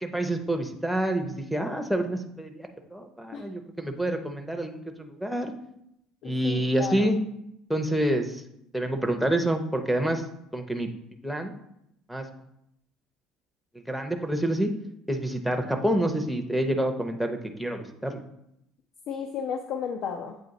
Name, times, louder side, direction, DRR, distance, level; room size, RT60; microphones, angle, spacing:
voice 1, 0.0-5.5 6.2-7.2 7.7-8.4 8.7-10.2 10.5-10.9 11.2-11.6 12.1-12.3 13.9-14.7 15.1-18.2, right 1 dB, ahead, 6 dB, 0.6 m, -27 dB
voice 2, 6.2-7.1 19.1-20.4, left 7 dB, 60° left, 5 dB, 0.5 m, -33 dB
7.7 x 3.1 x 4.0 m, 0.80 s
cardioid pair, 130°, 0 cm